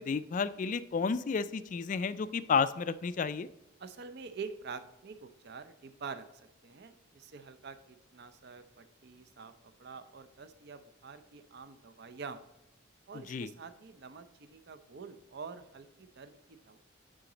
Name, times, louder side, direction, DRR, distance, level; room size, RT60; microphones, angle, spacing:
voice 1, 0.0-3.5 13.3-13.5, left 5 dB, 40° left, 15 dB, 0.3 m, -31 dB
voice 2, 3.8-6.3 6.6-9.5 9.8-12.5 13.1-16.8, right 5 dB, 55° right, 10 dB, 0.6 m, -46 dB
9.0 x 3.8 x 3.9 m, 0.90 s
head